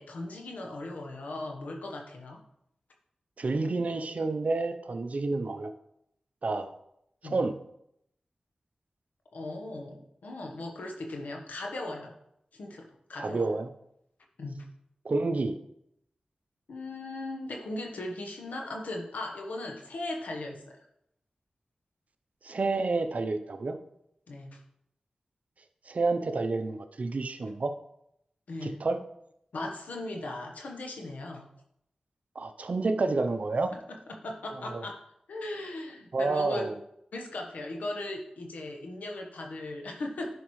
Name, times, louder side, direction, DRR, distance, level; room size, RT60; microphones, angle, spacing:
voice 1, 0.0-2.4 7.2-7.5 9.3-12.1 12.5-13.5 14.4-14.6 16.7-20.6 24.3-24.6 28.5-28.8 29.5-31.5 34.1-35.0 35.3-36.7 37.1-40.3, left 2 dB, 90° left, 1 dB, 1.2 m, -38 dB
voice 2, 3.4-5.7 6.4-6.7 7.2-7.6 13.2-13.7 15.0-15.6 22.4-23.8 25.9-27.7 28.6-29.0 32.3-33.7 34.5-34.8 36.1-36.7, right 3 dB, 65° right, 9 dB, 0.7 m, -29 dB
11.0 x 5.2 x 3.2 m, 0.78 s
cardioid pair, 40°, 3 cm